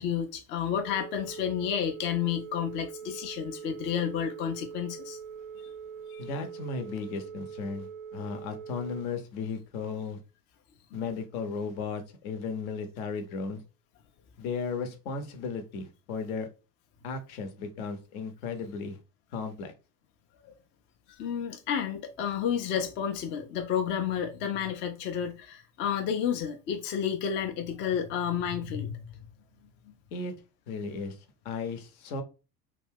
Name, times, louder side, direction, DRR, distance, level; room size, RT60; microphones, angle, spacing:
voice 1, 0.0-5.2 6.1-6.2 20.4-20.5 21.1-29.1, left 8 dB, 25° left, 0.4 m, -31 dB
Telephone, 0.7-9.0, right 7 dB, 60° right, 0.6 m, -43 dB
voice 2, 6.2-10.2 10.9-13.6 14.4-16.5 17.0-19.0 19.3-19.7 30.1-30.3 30.7-31.2 31.4-32.2, left 4 dB, 60° left, 0.8 m, -35 dB
2.5 x 2.3 x 3.4 m
figure-of-eight pair, 65°, 48 cm